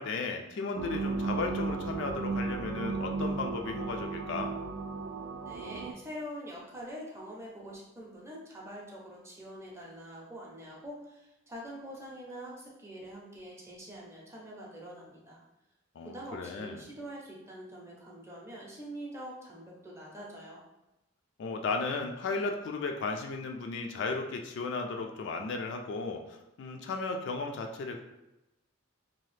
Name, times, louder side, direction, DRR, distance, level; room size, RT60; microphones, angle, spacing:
voice 1, 0.0-4.5 16.0-16.8 21.4-28.0, left 4 dB, 55° left, 3 dB, 0.3 m, -35 dB
sound 1, 0.7-5.9, right 4 dB, 85° right, 0.3 m, -34 dB
voice 2, 5.4-15.4 16.0-20.6, equal, 15° right, -4 dB, 0.6 m, -45 dB
2.8 x 2.3 x 3.2 m, 0.95 s
head